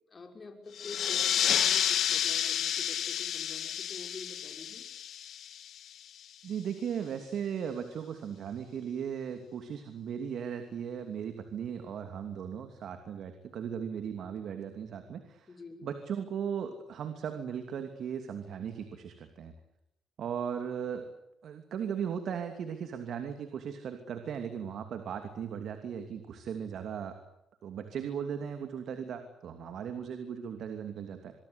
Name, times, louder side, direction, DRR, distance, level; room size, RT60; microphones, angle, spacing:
voice 1, 0.1-4.9 15.5-15.9, left 3 dB, 35° left, 4 dB, 6.0 m, -47 dB
sound 1, 0.7-6.0, left 10 dB, 70° left, 1.8 m, -30 dB
voice 2, 6.4-15.5 15.8-19.5 20.2-21.1 21.4-27.2 27.6-31.3, right 7 dB, 65° right, 7 dB, 2.8 m, -37 dB
25.5 x 23.0 x 8.3 m, 0.83 s
cardioid pair, 90°, 0 cm